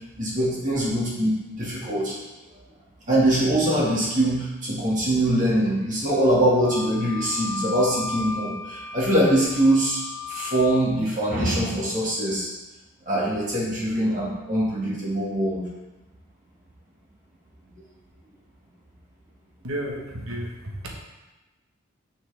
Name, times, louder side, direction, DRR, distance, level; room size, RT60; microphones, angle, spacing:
voice 1, 0.2-2.1 3.1-10.0 10.3-12.5 13.1-15.7, right 1 dB, 35° right, -6 dB, 2.0 m, -23 dB
Wind instrument woodwind instrument, 6.6-10.9, left 4 dB, 15° left, 2.3 m, -35 dB
voice 2, 19.6-20.9, right 1 dB, 75° right, -1 dB, 1.4 m, -32 dB
6.5 x 6.0 x 3.4 m, 1.1 s
head